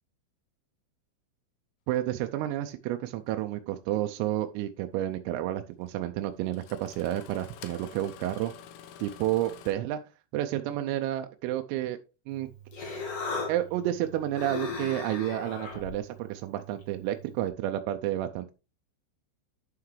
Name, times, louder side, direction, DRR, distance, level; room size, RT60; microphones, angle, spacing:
voice 1, 1.9-8.5 9.0-10.0 10.3-12.0 12.3-12.5 13.5-18.5, right 13 dB, 90° right, 6 dB, 3.3 m, -30 dB
Engine starting, 4.2-4.3 5.9-6.0 6.5-9.7, left 9 dB, 90° left, 3.6 m, -48 dB
Human voice, 12.3-17.5, left 3 dB, 60° left, 1.6 m, -38 dB
10.5 x 5.8 x 3.2 m, 0.30 s
omnidirectional pair, 5.8 m